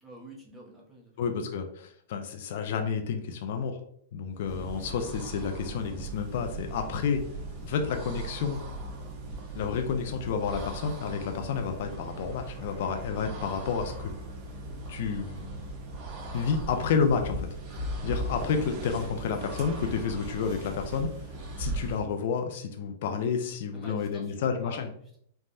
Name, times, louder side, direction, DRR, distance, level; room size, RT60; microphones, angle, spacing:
voice 1, 0.0-1.1 23.7-25.2, right 1 dB, ahead, -4 dB, 0.8 m, -48 dB
voice 2, 1.2-3.8 4.1-7.2 7.6-8.6 9.5-14.1 14.9-15.6 16.3-17.5 18.0-21.1 21.6-24.9, left 6 dB, 60° left, 5 dB, 0.4 m, -30 dB
sound 1, 4.3-22.1, right 2 dB, 40° right, 0.7 m, -38 dB
3.3 x 2.1 x 2.6 m, 0.65 s
hypercardioid pair, 130°, 0 cm